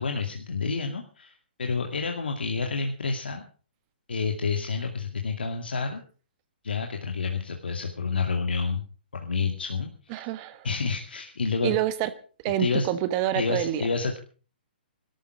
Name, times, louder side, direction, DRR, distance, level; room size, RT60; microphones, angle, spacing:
voice 1, 0.0-3.4 4.1-6.0 6.6-8.8 9.1-10.2 10.6-11.7 12.6-12.9 13.3-14.2, left 4 dB, 75° left, 3 dB, 2.3 m, -29 dB
voice 2, 10.1-10.7 11.6-12.1 12.4-13.9, right 12 dB, 35° right, 13 dB, 1.3 m, -27 dB
19.0 x 13.5 x 5.0 m, 0.39 s
figure-of-eight pair, 130°, 5 cm